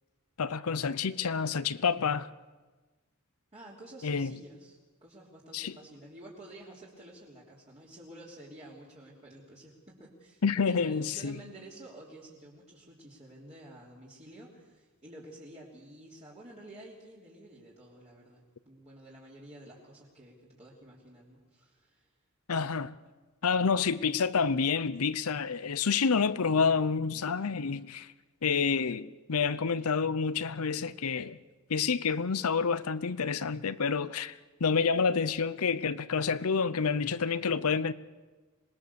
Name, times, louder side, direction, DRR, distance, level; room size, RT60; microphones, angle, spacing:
voice 1, 0.4-2.3 4.0-4.3 5.5-5.7 10.4-11.4 22.5-22.9 23.4-28.1 28.4-31.4 31.7-34.3 34.6-37.9, left 5 dB, 75° left, 0.7 m, -28 dB
voice 2, 3.5-22.1, right 1 dB, 30° right, 3.3 m, -51 dB
26.0 x 20.0 x 7.0 m
head